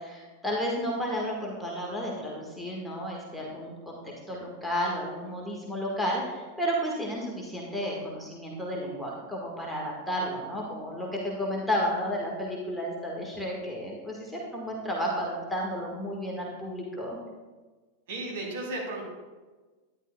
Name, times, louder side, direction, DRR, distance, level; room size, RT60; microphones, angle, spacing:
voice 1, 0.0-17.2, equal, 5° left, -3 dB, 1.6 m, -32 dB
voice 2, 18.1-19.0, right 2 dB, 55° right, -2 dB, 3.2 m, -34 dB
11.5 x 10.5 x 2.3 m, 1.3 s
figure-of-eight pair, 90°, 0 cm